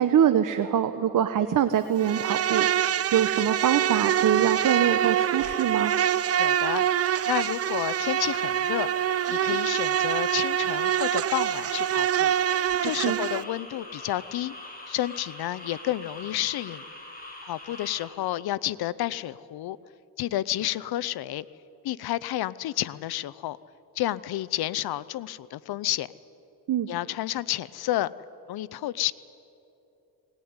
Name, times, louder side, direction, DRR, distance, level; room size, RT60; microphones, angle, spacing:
voice 1, 0.0-5.9 13.0-13.2 26.7-26.9, right 9 dB, 55° right, 9 dB, 1.0 m, -24 dB
Insect, 2.0-13.4, right 10 dB, 40° right, 0.5 m, -25 dB
Ambience Florida Frogs Gathering A, 4.4-18.1, left 2 dB, 20° left, 5.9 m, -43 dB
voice 2, 6.4-8.9 9.3-12.3 12.8-14.5 14.9-16.8 17.4-19.8 20.2-21.5 21.8-23.6 24.0-26.1 26.9-28.1 28.5-29.1, left 14 dB, 75° left, 18 dB, 0.7 m, -30 dB
20.0 x 19.5 x 9.6 m, 2.9 s
cardioid pair, 100°, 38 cm